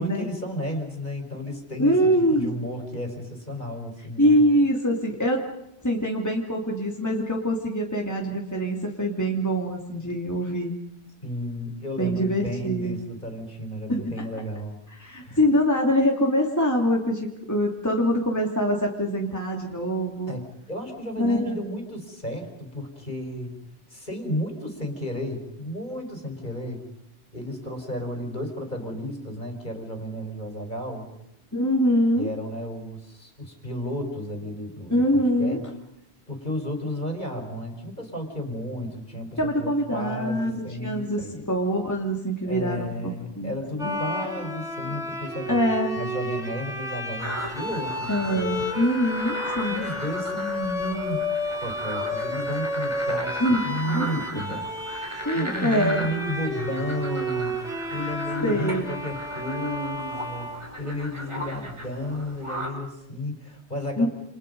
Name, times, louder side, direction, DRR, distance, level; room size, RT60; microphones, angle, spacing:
voice 1, 0.0-4.4 11.2-14.8 15.2-15.4 20.3-23.5 23.9-26.8 27.3-31.1 32.2-35.6 36.3-41.5 42.4-45.6 46.0-48.5 49.7-51.3 51.6-54.7 55.3-57.6 57.9-64.1, equal, 45° left, 4 dB, 4.7 m, -33 dB
voice 2, 1.8-2.5 4.2-5.4 5.8-10.7 12.0-12.9 13.9-14.1 15.0-20.3 21.2-21.6 31.5-32.3 34.9-35.6 39.4-43.5 43.8-44.0 45.5-45.9 48.1-49.8 53.4-54.1 54.3-54.4 55.2-56.1 58.4-58.9 64.0-64.1, equal, 15° left, 0 dB, 2.8 m, -24 dB
Bowed string instrument, 43.8-61.2, left 1 dB, 5° right, 6.4 m, -32 dB
sound 1, 47.2-62.7, equal, 25° right, 5.2 m, -37 dB
29.0 x 29.0 x 5.4 m, 0.82 s
omnidirectional pair, 1.1 m